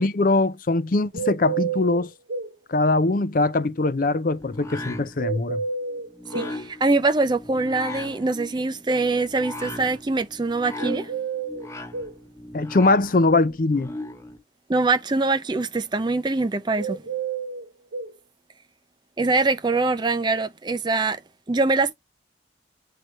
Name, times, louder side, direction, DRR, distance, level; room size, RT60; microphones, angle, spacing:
voice 1, 0.0-2.1 2.7-5.6 12.5-13.9, left 2 dB, 45° left, 0.5 m, -21 dB
sound 1, 1.1-2.5 5.2-6.6 10.8-12.2 16.7-18.1, right 5 dB, 85° right, 0.9 m, -30 dB
sound 2, 4.4-14.4, left 2 dB, 15° left, 0.7 m, -38 dB
voice 2, 6.3-11.1 14.7-17.0 19.2-21.2 21.5-21.9, right 3 dB, 25° right, 0.5 m, -23 dB
7.7 x 3.3 x 4.3 m
head